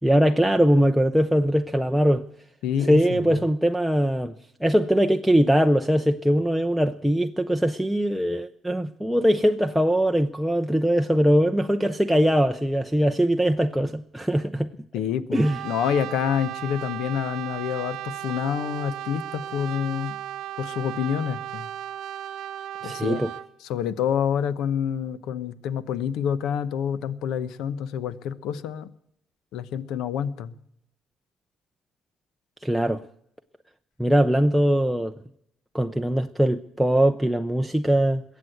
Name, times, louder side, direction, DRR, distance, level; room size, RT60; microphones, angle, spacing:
voice 1, 0.0-2.2 2.9-4.3 4.6-14.7 15.3-15.6 22.8-23.3 32.6-33.0 34.0-35.1 35.7-38.2, equal, ahead, 0.5 m, -21 dB
voice 2, 2.6-3.2 14.9-20.2 20.6-21.7 22.8-23.2 23.6-28.9 29.5-30.5, left 8 dB, 75° left, 0.9 m, -27 dB
Brass instrument, 15.3-23.5, right 12 dB, 65° right, 0.6 m, -35 dB
21.5 x 8.3 x 7.9 m
cardioid pair, 155°, 0 cm